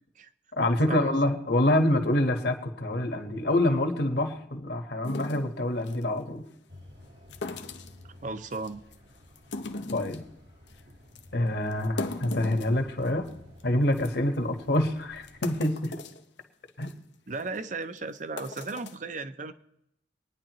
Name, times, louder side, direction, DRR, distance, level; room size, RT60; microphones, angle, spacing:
voice 1, 0.5-6.4 9.9-10.2 11.3-13.3 13.6-16.0 16.8-16.9, left 1 dB, 70° left, 5 dB, 1.5 m, -26 dB
sound 1, 5.0-6.0 7.3-8.0 8.5-9.0 9.4-10.3 10.7-10.8 11.2-11.3 11.7-13.3 13.6-13.7 14.0-14.1 14.7-14.8 15.2-16.2 16.7-16.9 17.4-17.6 18.2-19.0, left 3 dB, 90° left, 0.8 m, -38 dB
sound 2, 6.7-15.7, left 1 dB, 80° right, 2.4 m, -53 dB
voice 2, 8.2-8.8 17.3-19.5, right 3 dB, 45° right, 11 dB, 0.7 m, -35 dB
24.5 x 9.9 x 3.1 m, 0.81 s
head